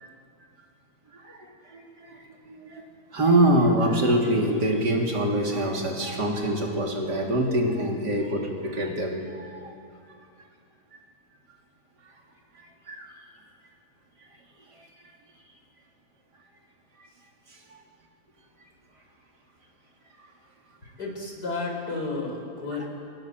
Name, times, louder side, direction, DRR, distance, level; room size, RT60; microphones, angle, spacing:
voice 1, 1.1-2.8 3.1-9.7 12.6-13.1 14.8-14.9, right 1 dB, 85° right, 0 dB, 3.9 m, -25 dB
voice 2, 21.0-22.9, left 3 dB, 80° left, 1 dB, 5.4 m, -32 dB
28.0 x 24.0 x 7.7 m, 2.5 s
omnidirectional pair, 1.7 m